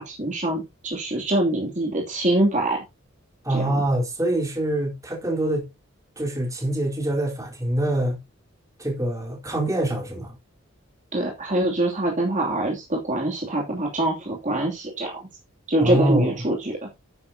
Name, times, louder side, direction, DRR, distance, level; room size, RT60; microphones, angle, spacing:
voice 1, 0.0-2.8 3.5-3.8 11.1-15.3 15.7-16.9, right 1 dB, 35° right, 2.8 m, -24 dB
voice 2, 3.4-5.7 6.2-8.2 8.8-10.3 15.8-16.3, right 1 dB, 15° right, 4.0 m, -25 dB
11.5 x 9.8 x 2.8 m
head